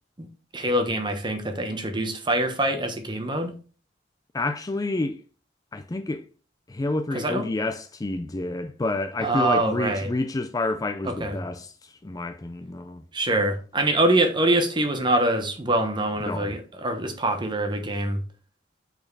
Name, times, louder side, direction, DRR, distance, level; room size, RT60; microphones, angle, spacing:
voice 1, 0.5-3.6 7.1-7.5 9.2-10.1 11.0-11.4 13.1-18.2, right 1 dB, 25° right, 1.1 m, -24 dB
voice 2, 4.3-5.2 5.7-6.3 6.7-13.0 16.3-16.6, left 2 dB, 20° left, 0.4 m, -29 dB
5.5 x 4.4 x 6.0 m
head